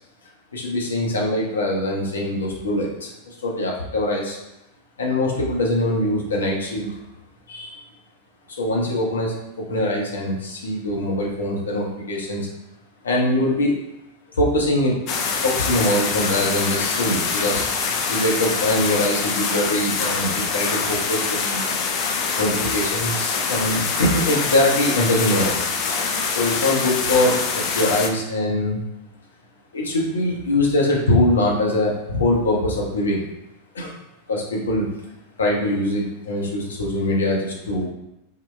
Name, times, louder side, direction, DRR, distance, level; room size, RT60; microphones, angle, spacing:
voice 1, 0.5-4.4 5.0-7.0 7.5-7.8 8.6-12.4 13.0-13.8 14.3-15.0 15.4-17.7 18.1-21.6 22.4-25.7 26.3-28.8 29.7-33.2 33.7-34.0 34.3-34.9 35.4-37.9, left 1 dB, 70° left, -2 dB, 0.7 m, -22 dB
sound 1, 15.1-28.1, left 5 dB, 40° left, 0.4 m, -24 dB
3.8 x 2.2 x 3.1 m, 0.91 s
figure-of-eight pair, 90°, 0 cm